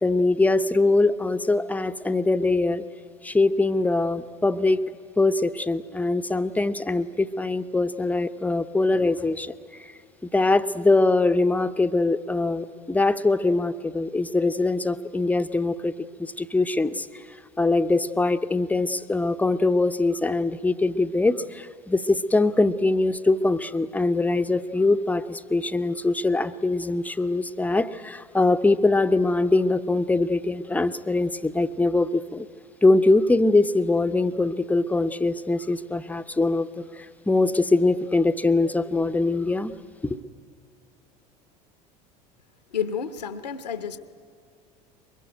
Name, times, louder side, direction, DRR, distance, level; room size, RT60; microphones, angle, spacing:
voice 1, 0.0-2.8 3.2-4.8 5.2-9.5 9.8-9.9 10.3-17.2 17.6-32.5 32.8-39.7 40.0-40.2, left 2 dB, 5° left, 11 dB, 0.8 m, -22 dB
voice 2, 42.7-44.0, left 7 dB, 80° left, 11 dB, 1.1 m, -30 dB
23.0 x 22.5 x 9.2 m, 2.3 s
figure-of-eight pair, 70°, 21 cm